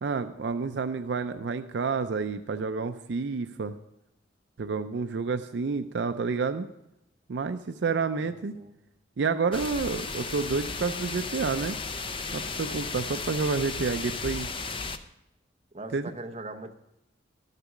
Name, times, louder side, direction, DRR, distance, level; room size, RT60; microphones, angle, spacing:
voice 1, 0.0-3.7 4.6-6.7 7.3-8.5 9.2-11.8 12.3-14.5 15.9-16.1, right 4 dB, 70° right, 8 dB, 0.4 m, -29 dB
voice 2, 8.2-8.7 15.7-16.7, right 2 dB, 35° right, 6 dB, 0.8 m, -41 dB
sound 1, 9.5-15.0, left 4 dB, 30° left, 0.6 m, -35 dB
12.5 x 6.7 x 6.0 m, 0.87 s
head